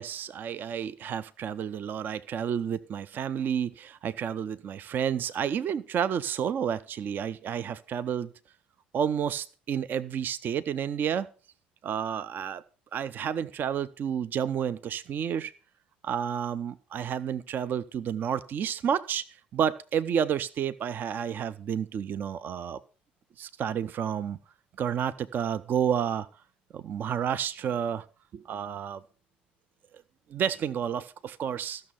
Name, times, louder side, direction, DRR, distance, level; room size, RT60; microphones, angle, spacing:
voice 1, 0.0-8.3 8.9-11.3 11.8-12.6 12.9-15.5 16.0-19.3 19.5-22.8 23.4-24.4 24.8-26.3 26.7-28.1 28.3-29.0 30.3-31.8, right 8 dB, 40° right, 0.5 m, -30 dB
14.0 x 6.5 x 5.6 m
figure-of-eight pair, 55°, 5 cm